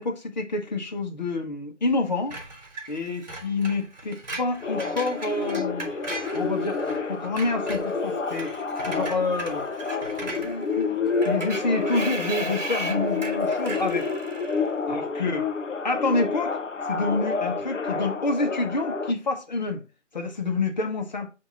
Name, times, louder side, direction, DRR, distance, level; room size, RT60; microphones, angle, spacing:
voice 1, 0.0-2.4 2.9-5.9 6.3-6.8 7.1-8.6 8.9-9.6 10.2-10.9 11.2-14.1 14.9-15.5 15.8-16.6 16.8-19.8 20.1-21.3, left 3 dB, 35° left, 1.1 m, -28 dB
Screech, 2.3-7.0 7.3-14.7, right 2 dB, 35° right, 1.8 m, -38 dB
sound 1, 4.6-19.1, left 4 dB, 80° left, 0.9 m, -29 dB
8.0 x 2.9 x 4.1 m
figure-of-eight pair, 160°, 37 cm